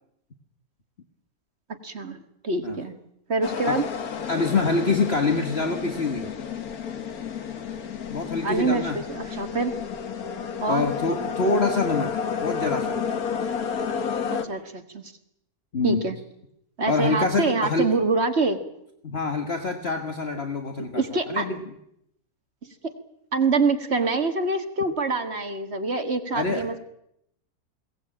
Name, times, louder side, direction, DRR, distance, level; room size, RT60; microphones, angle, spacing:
voice 1, 1.8-3.0 3.3-3.8 8.4-9.7 10.6-10.9 14.3-15.1 15.8-16.2 16.8-18.6 20.8-21.5 22.6-22.7 23.3-26.8, right 3 dB, 45° right, 8 dB, 2.1 m, -25 dB
sound 1, 3.4-14.4, left 6 dB, 75° left, 1.9 m, -31 dB
voice 2, 4.3-6.3 8.1-9.0 10.7-13.0 15.7-16.0 16.9-17.9 19.0-21.6 26.3-26.8, left 3 dB, 45° left, 6 dB, 1.8 m, -25 dB
21.5 x 18.0 x 8.8 m, 0.77 s
omnidirectional pair, 1.6 m